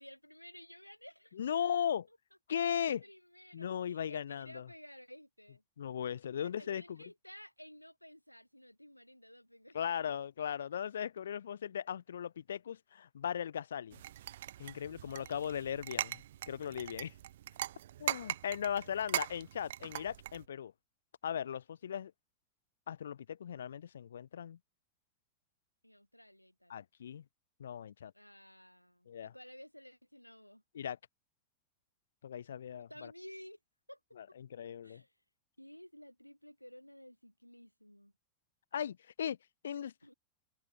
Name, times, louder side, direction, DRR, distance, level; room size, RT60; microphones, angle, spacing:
voice 1, 0.0-1.4 2.1-2.2 2.7-5.6 6.3-9.8 14.8-16.0 25.8-26.7 28.1-30.6 32.7-33.6 33.9-34.0 34.8-35.1 35.6-38.1 40.0-40.1, equal, 90° left, 2.7 m, -54 dB
voice 2, 1.3-2.1 2.5-3.0 3.5-4.7 5.8-7.0 9.7-14.0 14.6-17.1 18.0-20.7 21.2-22.1 22.9-24.6 26.7-27.2 27.6-28.1 29.1-29.3 30.7-31.0 32.2-33.1 34.2-35.0 38.7-39.4 39.6-40.1, left 9 dB, 65° left, 0.5 m, -38 dB
sound 1, 13.9-20.5, right 12 dB, 60° right, 0.5 m, -41 dB
figure-of-eight pair, 90°, 0 cm